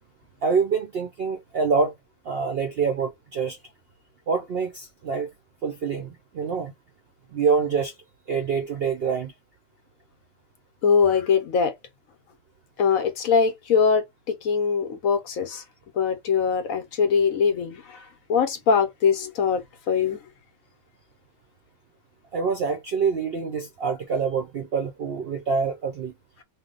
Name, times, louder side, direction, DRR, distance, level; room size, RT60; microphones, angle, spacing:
voice 1, 0.4-1.9 2.3-3.6 4.3-5.3 5.6-6.7 7.3-7.9 8.3-9.3 22.3-26.1, right 5 dB, 65° right, 0.6 m, -26 dB
voice 2, 10.8-11.7 12.8-15.6 16.0-17.8 18.3-20.2, left 6 dB, 65° left, 1.2 m, -22 dB
3.2 x 2.1 x 3.7 m
omnidirectional pair, 1.6 m